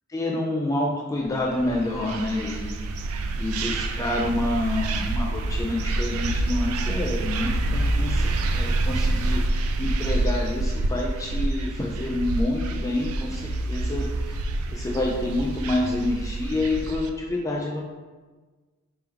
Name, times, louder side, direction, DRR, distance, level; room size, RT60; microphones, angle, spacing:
voice 1, 0.1-2.8 3.3-14.4 14.7-17.8, left 2 dB, 15° left, -1 dB, 0.3 m, -28 dB
sound 1, 1.4-17.1, right 2 dB, 85° right, 0.4 m, -27 dB
4.4 x 3.5 x 3.5 m, 1.3 s
head